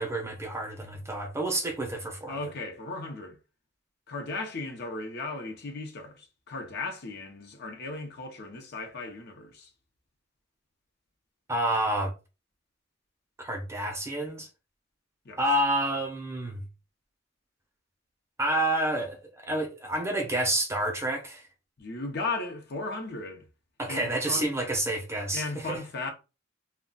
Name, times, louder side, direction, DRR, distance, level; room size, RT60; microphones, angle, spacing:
voice 1, 0.0-2.4 11.5-12.1 13.4-14.5 15.4-16.6 18.4-21.5 23.8-25.8, right 1 dB, 15° right, 0.6 m, -29 dB
voice 2, 2.3-3.4 4.1-9.7 15.2-15.4 21.8-23.5 23.9-24.5 25.3-26.1, left 3 dB, 60° left, 0.7 m, -36 dB
2.3 x 2.2 x 3.7 m
head